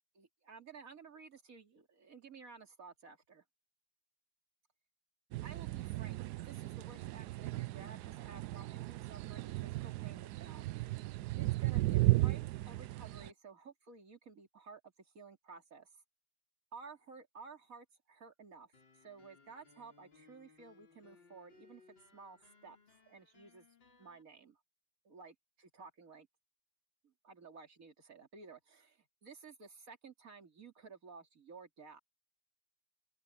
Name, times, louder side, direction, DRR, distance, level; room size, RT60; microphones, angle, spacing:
voice 1, 0.1-3.4 5.4-10.7 11.4-16.0 16.7-21.8 22.1-22.8 23.0-23.7 24.0-24.6 25.0-26.3 27.0-32.0, right 5 dB, 45° right, 3.1 m, -54 dB
sound 1, 5.3-13.3, right 19 dB, 75° right, 0.9 m, -35 dB
sound 2, 18.7-24.2, left 5 dB, 65° left, 5.3 m, -64 dB
open air
omnidirectional pair, 2.2 m